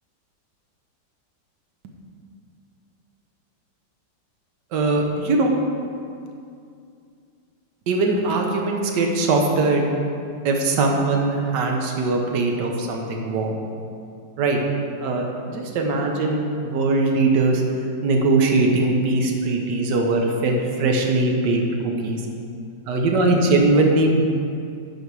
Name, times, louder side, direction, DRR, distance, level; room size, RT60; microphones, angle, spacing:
voice 1, 4.7-5.5 7.9-9.8 10.4-13.6 14.4-14.6 15.0-17.6 18.0-22.2 22.9-24.2, right 2 dB, 70° right, 1 dB, 1.5 m, -21 dB
11.5 x 4.7 x 4.7 m, 2.4 s
omnidirectional pair, 1.9 m